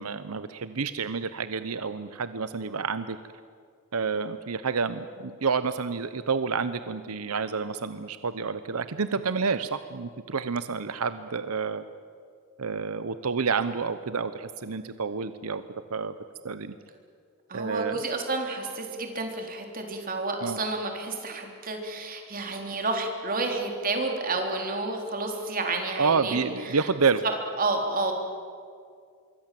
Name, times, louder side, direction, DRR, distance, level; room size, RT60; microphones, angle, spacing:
voice 1, 0.0-3.2 3.9-11.8 12.6-15.6 15.9-16.1 16.4-16.8 17.5-18.0 20.4-20.6 26.0-27.2, right 5 dB, 90° right, 12 dB, 0.8 m, -29 dB
voice 2, 17.5-26.8 27.2-28.1, right 3 dB, 40° right, 3 dB, 3.5 m, -30 dB
26.0 x 23.0 x 7.6 m, 2.2 s
head